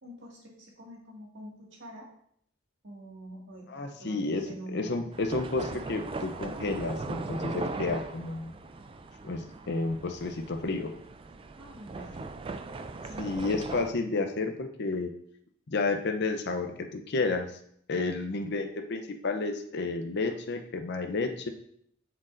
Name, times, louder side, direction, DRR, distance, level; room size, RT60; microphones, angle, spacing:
voice 1, 0.0-2.1 2.8-5.1 11.6-12.2 13.1-13.4, right 1 dB, 60° right, -2 dB, 1.9 m, -46 dB
voice 2, 3.7-4.4 4.7-8.5 9.2-10.9 13.2-15.1 15.7-17.5 17.9-21.5, left 3 dB, 55° left, 5 dB, 0.6 m, -31 dB
sound 1, 5.1-13.9, right 3 dB, 25° right, 0.3 m, -39 dB
8.0 x 6.5 x 2.5 m, 0.68 s
head